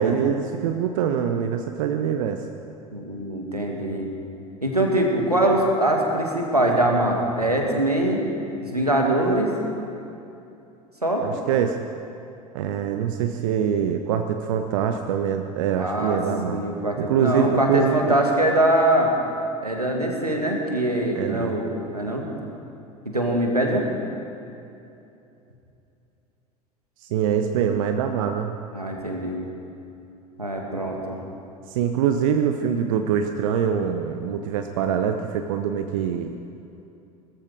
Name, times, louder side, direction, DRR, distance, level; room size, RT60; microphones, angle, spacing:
voice 1, 0.0-2.4 11.2-11.8 12.5-16.6 17.0-18.2 21.2-21.5 27.0-28.6 31.7-36.4, right 8 dB, 60° right, 6 dB, 0.8 m, -24 dB
voice 2, 2.9-4.1 4.6-8.2 8.6-9.5 11.0-11.2 15.8-16.2 16.5-19.1 19.6-22.2 23.1-23.9 28.8-29.4 30.4-31.2, right 1 dB, 90° right, 1 dB, 1.9 m, -23 dB
19.5 x 14.0 x 4.9 m, 2.8 s
figure-of-eight pair, 75°, 19 cm